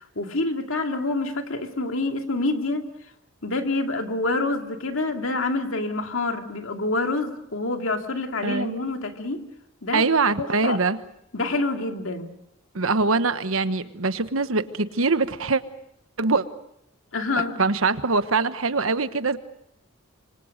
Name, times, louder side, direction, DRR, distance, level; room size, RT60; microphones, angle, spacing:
voice 1, 0.0-2.8 3.4-9.4 9.8-10.0 10.4-10.8 11.3-12.3 17.1-17.5, left 2 dB, 70° left, 4 dB, 2.4 m, -27 dB
voice 2, 8.4-8.8 9.9-11.0 12.7-15.6 16.2-16.4 17.3-19.4, right 4 dB, 90° right, 12 dB, 1.2 m, -23 dB
26.5 x 24.5 x 6.5 m, 0.78 s
head